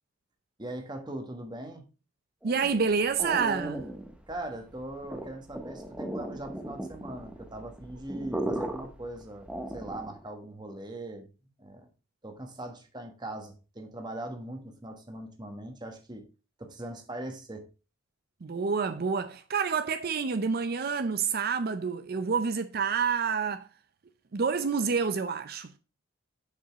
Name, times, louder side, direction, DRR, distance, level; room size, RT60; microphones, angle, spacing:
voice 1, 0.6-1.9 4.3-11.3 11.6-11.9 12.2-16.3 16.6-17.7, right 1 dB, 20° right, 1.2 m, -40 dB
sound 1, 2.4-10.3, right 1 dB, 5° right, 0.8 m, -38 dB
voice 2, 2.4-3.9 18.4-23.7 24.3-25.8, right 5 dB, 50° right, 0.5 m, -28 dB
6.9 x 5.3 x 4.9 m
head